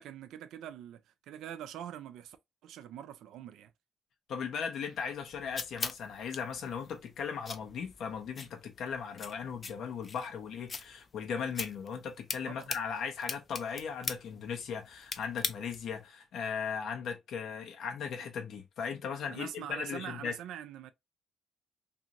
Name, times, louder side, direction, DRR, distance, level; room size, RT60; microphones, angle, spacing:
voice 1, 0.0-2.4 2.6-3.7 12.4-12.7 19.3-20.9, right 10 dB, 85° right, 0.4 m, -44 dB
voice 2, 4.3-20.3, left 6 dB, 75° left, 0.9 m, -37 dB
sound 1, 5.0-16.0, left 4 dB, 40° left, 0.5 m, -42 dB
2.7 x 2.6 x 2.8 m
cardioid pair, 90°, 0 cm